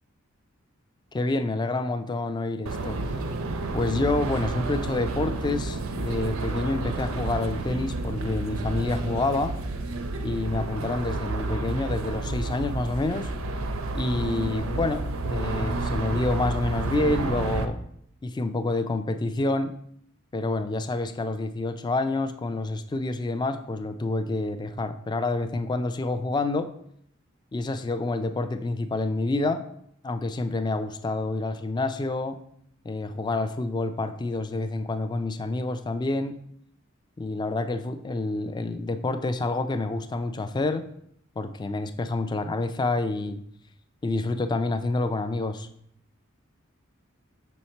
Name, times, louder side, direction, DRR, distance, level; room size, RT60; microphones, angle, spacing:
voice 1, 1.1-3.0 3.7-9.6 10.2-13.3 13.9-17.8 18.2-19.7 20.3-26.7 27.5-29.6 30.0-32.4 32.8-36.4 37.2-40.9 41.4-43.4 44.0-45.7, left 2 dB, 20° left, 9 dB, 0.3 m, -28 dB
sound 1, 2.7-17.7, right 2 dB, 85° right, 0.6 m, -30 dB
5.6 x 4.2 x 4.4 m, 0.70 s
head